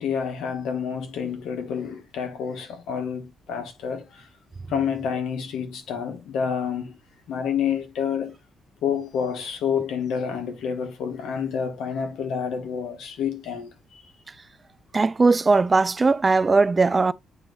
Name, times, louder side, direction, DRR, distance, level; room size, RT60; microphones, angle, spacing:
voice 1, 0.0-4.3 4.7-7.0 7.3-8.3 8.8-14.0, left 7 dB, 80° left, 1.7 m, -28 dB
voice 2, 14.9-17.1, right 3 dB, 25° right, 0.4 m, -19 dB
8.7 x 3.1 x 5.4 m
cardioid pair, 90°, 0 cm